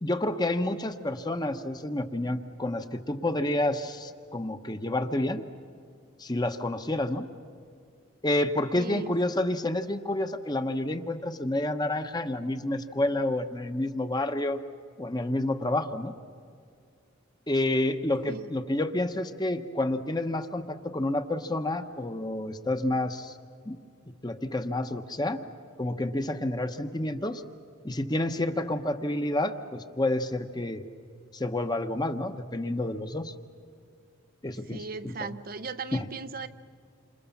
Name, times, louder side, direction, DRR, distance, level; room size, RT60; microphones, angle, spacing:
voice 1, 0.0-5.4 6.2-7.3 8.2-14.6 15.0-16.1 17.5-23.4 23.7-23.8 24.2-25.4 25.8-27.4 27.8-30.8 31.3-33.3 34.4-35.3 35.9-36.0, left 1 dB, 20° left, 8 dB, 1.0 m, -29 dB
voice 2, 8.8-9.1 18.3-18.5 34.7-36.5, right 4 dB, 45° right, 10 dB, 0.6 m, -37 dB
28.5 x 26.5 x 7.1 m, 2.2 s
head